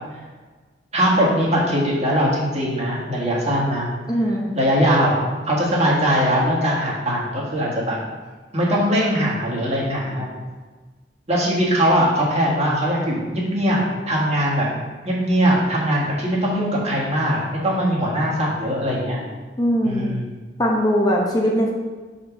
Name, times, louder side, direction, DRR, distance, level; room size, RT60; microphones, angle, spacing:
voice 1, 0.9-3.9 4.5-8.0 8.5-10.3 11.3-14.7 15.0-19.2 19.8-20.3, equal, 40° right, -5 dB, 1.7 m, -21 dB
voice 2, 4.1-4.4 19.6-20.1 20.6-21.7, equal, 25° left, -2 dB, 0.9 m, -20 dB
4.7 x 4.4 x 5.9 m, 1.3 s
head